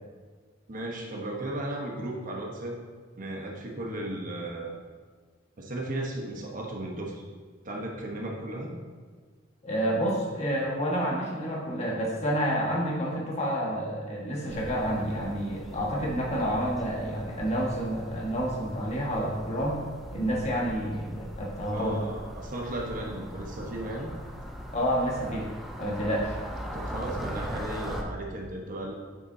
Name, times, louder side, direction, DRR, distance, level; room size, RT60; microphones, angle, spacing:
voice 1, 0.7-2.8 3.2-4.8 5.6-7.2 7.6-8.7 21.7-24.1 26.7-29.0, right 1 dB, 45° right, 0 dB, 1.1 m, -35 dB
voice 2, 9.6-19.8 20.1-22.0 24.7-25.5 25.8-26.4, equal, 35° left, -3 dB, 1.5 m, -29 dB
sound 1, 14.5-28.0, equal, ahead, 0.6 m, -40 dB
8.4 x 6.8 x 2.7 m, 1.5 s
head